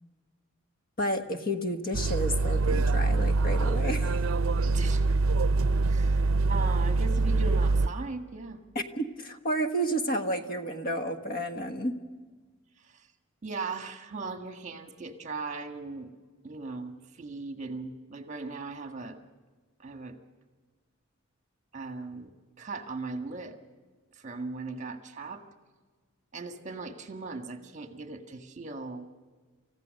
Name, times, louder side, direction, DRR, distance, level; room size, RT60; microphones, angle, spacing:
voice 1, 1.0-4.2 8.7-11.9, right 1 dB, 45° left, 6 dB, 1.5 m, -31 dB
sound 1, 1.9-7.9, right 3 dB, 75° right, 0.5 m, -25 dB
voice 2, 4.6-5.0 5.9-8.6 12.8-13.1 13.4-16.1 16.4-19.2 19.8-20.2 21.7-23.6 24.1-25.4 26.3-29.1, right 4 dB, 35° right, 6 dB, 1.8 m, -38 dB
28.5 x 15.5 x 6.6 m, 1.4 s
head